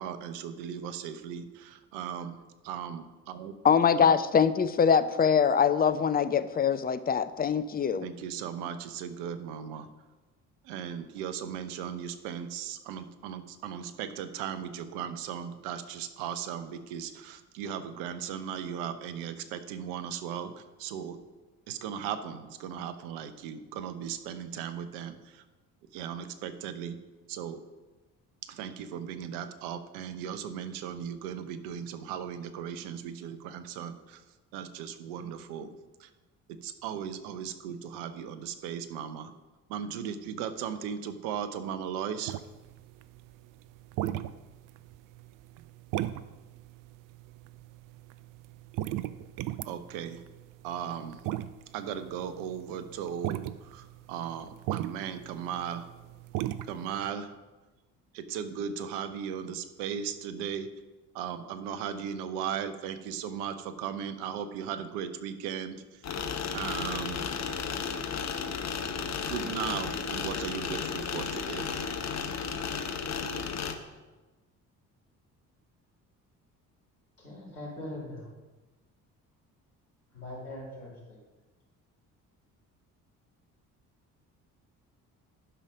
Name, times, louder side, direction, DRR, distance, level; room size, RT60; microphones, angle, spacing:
voice 1, 0.0-2.4 2.6-3.8 8.0-9.9 10.6-21.2 21.7-25.4 25.9-27.0 27.3-27.6 28.4-34.2 34.5-35.7 36.0-36.1 36.5-39.3 39.7-42.4 49.6-50.2 50.6-51.2 51.7-55.9 56.7-57.3 58.1-60.7 61.1-66.0 66.5-67.4 68.0-68.1 69.2-71.9, right 8 dB, 65° right, 11 dB, 0.9 m, -37 dB
voice 2, 3.6-8.1, left 7 dB, 20° left, 12 dB, 0.6 m, -23 dB
sound 1, 42.3-57.1, right 14 dB, 45° right, 0.5 m, -37 dB
sound 2, 66.0-73.7, left 6 dB, 40° left, 1.0 m, -33 dB
voice 3, 77.2-78.3 80.1-81.2, left 1 dB, 85° left, -4 dB, 2.4 m, -41 dB
11.5 x 5.7 x 5.1 m, 1.2 s
figure-of-eight pair, 50°, 44 cm